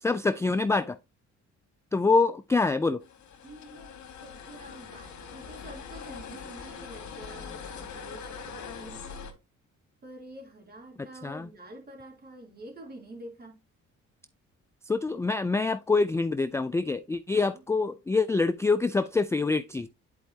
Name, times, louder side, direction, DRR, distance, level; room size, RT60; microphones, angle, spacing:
voice 1, 0.0-1.0 1.9-3.0 11.2-11.5 14.9-19.9, left 3 dB, 10° left, 0.3 m, -25 dB
sound 1, 3.0-9.3, left 6 dB, 70° left, 2.0 m, -42 dB
voice 2, 3.4-9.1 10.0-13.6 17.3-17.6, right 1 dB, 30° right, 3.0 m, -47 dB
10.5 x 4.6 x 2.8 m
cardioid pair, 90°, 30 cm